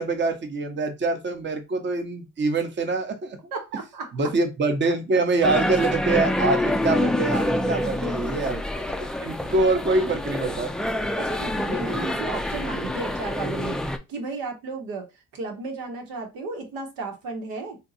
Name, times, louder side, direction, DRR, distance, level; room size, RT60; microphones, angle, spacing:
voice 1, 0.0-3.4 4.1-10.7, right 3 dB, 30° right, 0.8 m, -25 dB
voice 2, 3.5-4.3 7.6-8.6 11.2-13.8 14.1-15.1 15.3-17.8, right 3 dB, 80° right, 1.1 m, -34 dB
sound 1, 5.4-14.0, left 1 dB, ahead, 0.4 m, -26 dB
2.7 x 2.2 x 4.0 m
supercardioid pair, 70°, 34 cm